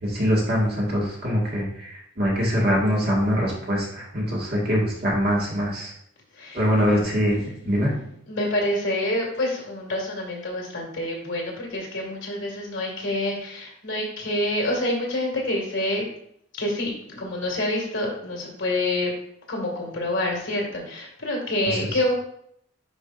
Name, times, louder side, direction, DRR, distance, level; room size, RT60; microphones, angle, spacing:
voice 1, 0.0-5.9 6.5-7.4 7.7-7.9, equal, 50° right, -4 dB, 2.0 m, -23 dB
voice 2, 6.3-16.0 16.6-19.1 19.5-22.1, left 1 dB, 70° left, -1 dB, 2.3 m, -27 dB
9.8 x 5.1 x 2.6 m, 0.69 s
head